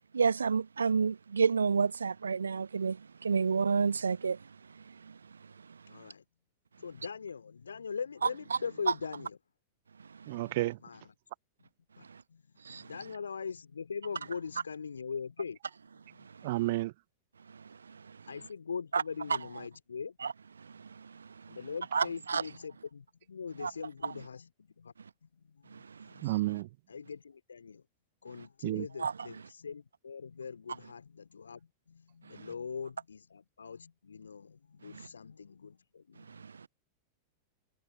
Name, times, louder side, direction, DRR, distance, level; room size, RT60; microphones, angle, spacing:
voice 1, 0.1-3.0 3.2-4.4 12.7-12.9 18.9-19.0 21.9-22.4 23.6-23.7 26.2-26.3 29.0-29.1, right 5 dB, 75° right, 1.1 m, -28 dB
voice 2, 5.9-6.3 6.8-9.4 10.8-11.1 11.6-11.7 12.0-15.6 15.9-16.3 18.3-20.2 21.5-24.9 25.2-26.5 26.9-27.9 28.2-36.5, left 6 dB, 75° left, 2.7 m, -42 dB
voice 3, 10.3-10.8 16.4-16.9 26.2-26.7 28.6-28.8, right 18 dB, 50° right, 0.5 m, -31 dB
figure-of-eight pair, 90°, 0 cm